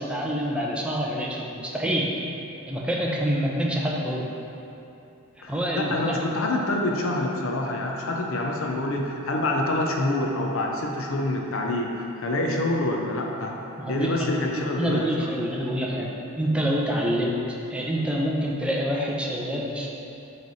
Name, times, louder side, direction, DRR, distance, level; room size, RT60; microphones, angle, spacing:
voice 1, 0.0-2.1 2.7-4.3 5.5-6.0 13.8-14.3 14.8-16.1 16.4-17.4 17.7-19.9, equal, 5° right, -3 dB, 0.6 m, -26 dB
voice 2, 5.4-13.5 13.9-15.3, left 1 dB, 70° left, 1 dB, 0.7 m, -26 dB
8.4 x 3.3 x 4.1 m, 2.9 s
head